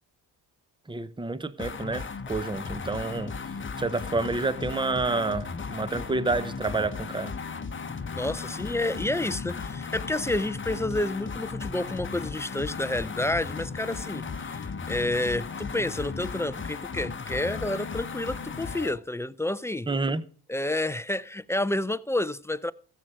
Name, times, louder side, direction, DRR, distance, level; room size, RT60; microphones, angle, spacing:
voice 1, 0.9-3.4 3.8-7.3 19.9-20.2, right 3 dB, 10° right, 0.8 m, -29 dB
sound 1, 1.6-19.0, left 5 dB, 25° left, 1.0 m, -36 dB
voice 2, 8.1-19.9 20.5-22.7, left 1 dB, 5° left, 0.4 m, -29 dB
15.0 x 7.9 x 5.0 m
supercardioid pair, 65°, 46 cm